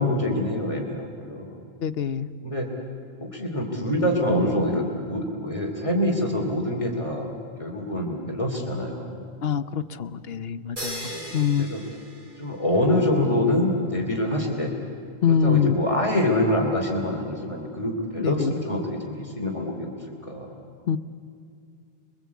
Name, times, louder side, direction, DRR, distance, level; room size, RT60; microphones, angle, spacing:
voice 1, 0.0-1.6 2.4-2.7 3.2-7.3 7.6-9.2 11.0-11.8 12.4-14.7 15.3-19.9 20.3-20.5, left 1 dB, 30° left, 0 dB, 3.1 m, -25 dB
voice 2, 1.8-2.3 9.4-11.7 15.2-15.8 18.2-18.5 20.9-21.0, left 7 dB, 75° left, 12 dB, 1.1 m, -24 dB
sound 1, 10.8-12.9, right 1 dB, 50° right, 3.9 m, -37 dB
29.5 x 23.0 x 8.4 m, 2.5 s
omnidirectional pair, 1.0 m